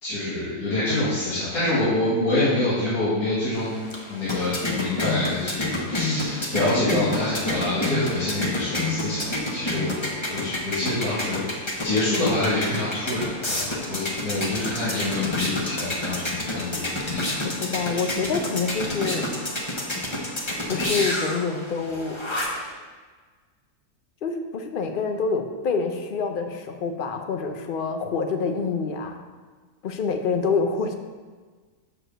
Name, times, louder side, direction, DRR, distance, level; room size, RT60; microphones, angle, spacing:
voice 1, 0.0-3.7 4.1-11.4 11.8-17.2 17.9-18.1, left 2 dB, 70° left, -11 dB, 2.4 m, -26 dB
sound 1, 3.5-22.7, left 1 dB, 20° left, 0.9 m, -29 dB
voice 2, 15.1-15.5 17.4-19.3 20.7-22.2 24.2-29.2 29.8-30.9, left 5 dB, 55° left, 5 dB, 0.6 m, -27 dB
6.5 x 4.7 x 6.5 m, 1.4 s
omnidirectional pair, 1.6 m